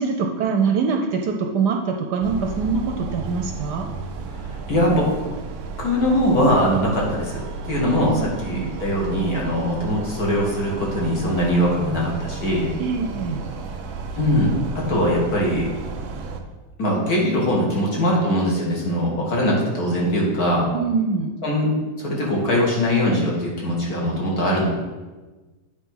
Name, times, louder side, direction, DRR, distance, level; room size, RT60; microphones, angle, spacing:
voice 1, 0.0-3.9 7.8-8.7 12.8-13.4 20.7-21.3, right 5 dB, 70° right, 3 dB, 1.1 m, -24 dB
sound 1, 2.2-16.4, right 4 dB, 90° right, 0.6 m, -33 dB
voice 2, 4.7-5.1 5.8-7.4 7.7-12.7 14.2-15.7 16.8-20.7 21.4-21.7 22.0-24.6, equal, 50° left, -3 dB, 2.0 m, -21 dB
8.8 x 3.4 x 5.5 m, 1.2 s
omnidirectional pair, 2.1 m